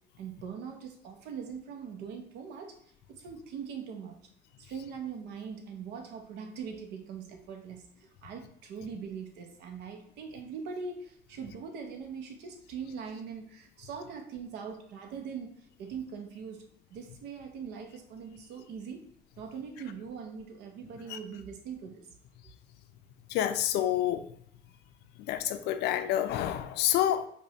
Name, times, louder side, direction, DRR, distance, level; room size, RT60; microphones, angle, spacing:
voice 1, 0.2-2.8 3.1-4.2 4.6-16.6 16.9-19.0 19.4-22.1, right 6 dB, 90° right, 0.6 m, -41 dB
voice 2, 23.3-24.3 25.2-27.3, left 11 dB, 75° left, 0.4 m, -28 dB
5.0 x 2.2 x 2.8 m
cardioid pair, 110°, 17 cm